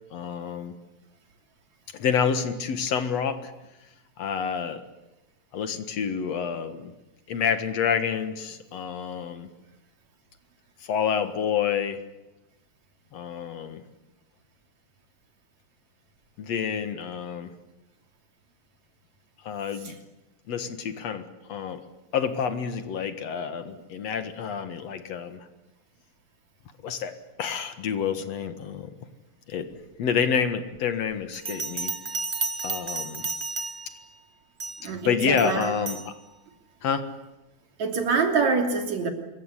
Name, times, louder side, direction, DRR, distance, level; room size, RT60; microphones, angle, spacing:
voice 1, 0.1-0.8 1.9-3.5 4.2-4.8 5.5-6.9 7.3-9.5 10.8-12.0 13.1-13.8 16.4-17.5 19.4-19.9 20.5-21.8 22.1-25.5 26.8-28.9 29.5-29.7 30.0-31.9 32.6-33.3 34.8-36.1 36.8-37.1, left 7 dB, 60° left, 10 dB, 2.6 m, -28 dB
Bell, 31.3-34.0 34.6-34.9 35.4-36.1, right 4 dB, 35° right, 0.8 m, -32 dB
voice 2, 34.8-35.7 37.8-39.1, right 4 dB, 70° right, 5 dB, 4.3 m, -25 dB
26.5 x 22.5 x 9.9 m, 0.98 s
omnidirectional pair, 3.4 m